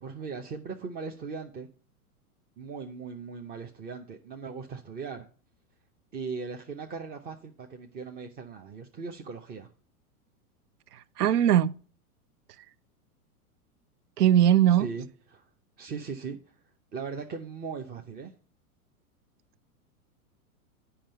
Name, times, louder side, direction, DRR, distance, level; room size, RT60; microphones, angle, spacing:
voice 1, 0.0-1.7 2.6-5.3 6.1-9.7 14.8-15.4 15.8-16.5 16.9-18.3, right 5 dB, 20° right, 0.6 m, -39 dB
voice 2, 10.9-11.7 14.2-14.9, right 10 dB, 85° right, 0.6 m, -21 dB
8.8 x 5.6 x 5.5 m
hypercardioid pair, 110°, 45 cm